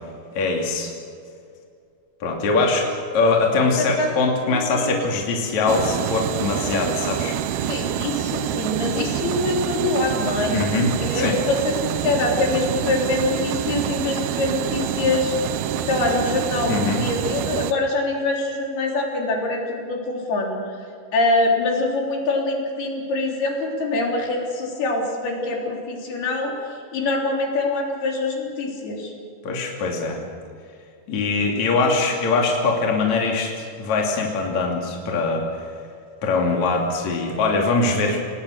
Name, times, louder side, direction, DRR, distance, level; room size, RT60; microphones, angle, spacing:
voice 1, 0.4-0.9 2.2-7.7 10.5-11.4 16.7-17.0 29.4-30.2 31.1-35.4 36.2-38.2, left 3 dB, 50° left, 0 dB, 3.8 m, -22 dB
voice 2, 4.5-5.0 7.7-10.6 11.0-15.3 15.9-20.7 21.1-29.1, left 2 dB, 75° left, 0 dB, 5.4 m, -24 dB
sound 1, 5.7-17.7, right 10 dB, 80° right, 2.8 m, -26 dB
28.5 x 19.5 x 6.6 m, 2.4 s
omnidirectional pair, 4.5 m